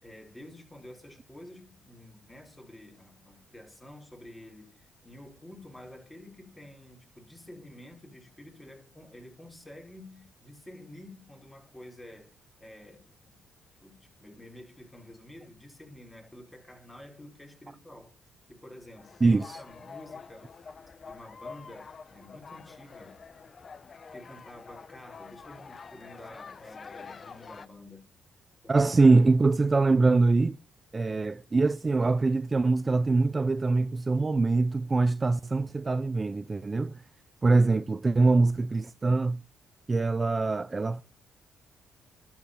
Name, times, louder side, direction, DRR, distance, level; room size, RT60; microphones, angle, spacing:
voice 1, 0.0-12.3 12.6-13.4 13.8-18.1 18.5-20.7 21.0-23.2 24.1-28.1 28.6-28.8 37.5-37.9, left 1 dB, 15° left, 5.4 m, -49 dB
sound 1, 19.0-27.7, left 5 dB, 40° left, 0.7 m, -47 dB
voice 2, 19.2-19.6 28.7-30.6 30.9-37.0 37.4-39.4 39.9-41.0, right 3 dB, 25° right, 0.6 m, -23 dB
12.0 x 9.6 x 5.7 m
cardioid pair, 90°, 0 cm